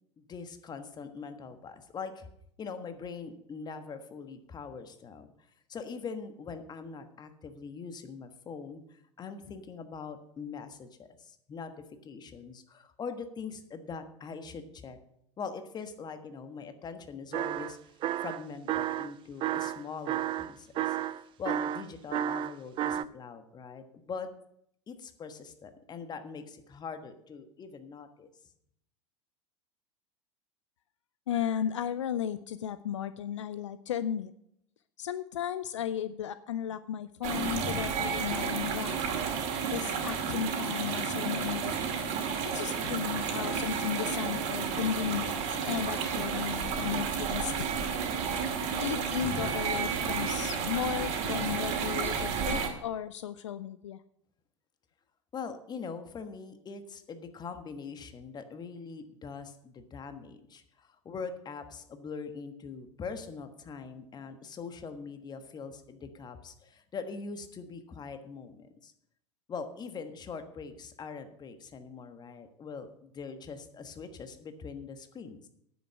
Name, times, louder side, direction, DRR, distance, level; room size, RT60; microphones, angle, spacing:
voice 1, 0.2-2.3 2.6-5.3 5.7-11.7 12.0-15.0 15.4-17.8 18.2-24.3 24.9-28.3 55.3-68.9 69.5-75.5, left 5 dB, 25° left, 8 dB, 1.4 m, -42 dB
sound 1, 17.3-17.8 18.0-19.1 19.4-23.0, right 11 dB, 30° right, 0.4 m, -31 dB
voice 2, 31.3-34.3 35.0-39.0 39.7-41.7 42.5-47.7 48.8-54.0, left 9 dB, 70° left, 14 dB, 0.5 m, -35 dB
sound 2, 37.2-52.7, right 6 dB, 50° right, 2.4 m, -31 dB
9.8 x 7.9 x 6.4 m, 0.73 s
figure-of-eight pair, 85°, 16 cm